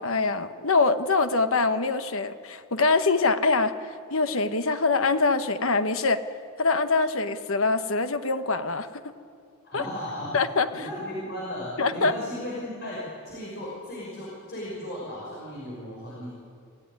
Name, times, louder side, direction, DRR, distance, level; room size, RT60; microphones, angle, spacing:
voice 1, 0.0-6.2 6.6-8.9 9.7-9.8 10.3-10.9 11.8-12.1, left 3 dB, 65° left, 9 dB, 1.2 m, -24 dB
voice 2, 9.6-10.4 10.7-16.3, left 1 dB, 50° left, -5 dB, 5.7 m, -36 dB
27.0 x 16.0 x 9.8 m, 2.3 s
head